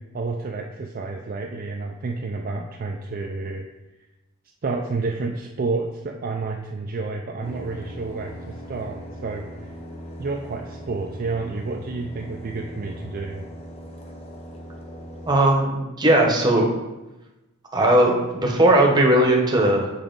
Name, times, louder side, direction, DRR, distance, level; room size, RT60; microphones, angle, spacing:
voice 1, 0.1-3.7 4.6-9.7 10.2-13.5, right 3 dB, 40° right, 1 dB, 0.4 m, -30 dB
sound 1, 7.4-15.4, equal, 30° left, 0.7 m, -40 dB
voice 2, 15.3-16.7 17.7-19.9, right 1 dB, 20° right, 0 dB, 0.9 m, -18 dB
7.0 x 4.8 x 3.9 m, 1.1 s
head